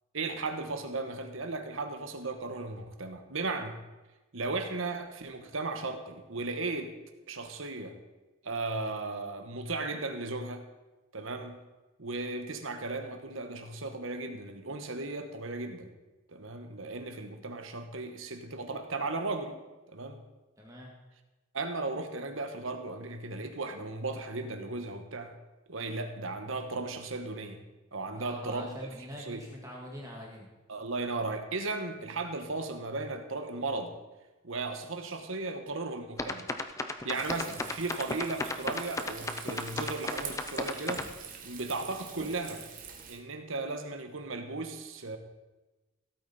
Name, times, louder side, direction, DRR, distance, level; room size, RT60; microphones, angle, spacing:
voice 1, 0.1-3.8 4.3-6.9 7.3-8.0 8.4-10.6 11.1-11.6 12.0-15.9 16.3-19.6 19.9-20.2 21.5-25.3 25.7-27.6 27.9-28.8 29.2-29.4 30.7-34.0 34.4-36.5 37.0-41.1 41.4-42.6 43.1-45.2, right 3 dB, 75° right, 6 dB, 1.3 m, -36 dB
voice 2, 20.6-20.9 28.1-30.5, equal, 15° right, -2 dB, 1.8 m, -44 dB
sound 1, 36.2-41.1, left 2 dB, 15° left, 0.6 m, -34 dB
Frying (food), 37.1-43.2, right 6 dB, 40° right, 1.3 m, -45 dB
16.0 x 8.8 x 4.3 m, 1.1 s
head